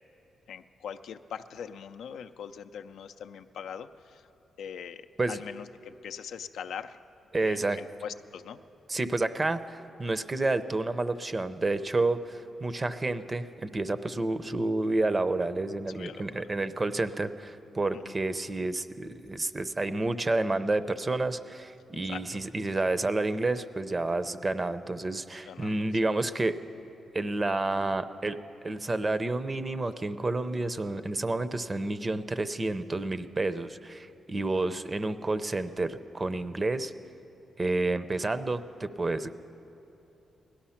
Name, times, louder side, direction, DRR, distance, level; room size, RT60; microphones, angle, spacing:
voice 1, 0.5-4.2 4.6-5.0 5.3-7.0 7.4-8.6 15.9-16.4 17.9-18.1 22.1-22.2 25.5-26.1 34.5-34.8, left 7 dB, 85° left, 9 dB, 0.4 m, -42 dB
voice 2, 7.3-7.8 8.9-26.6 27.1-28.4 28.6-36.9 37.6-39.3, right 2 dB, 30° right, 12 dB, 0.6 m, -30 dB
17.5 x 12.0 x 5.8 m, 3.0 s
cardioid pair, 70°, 0 cm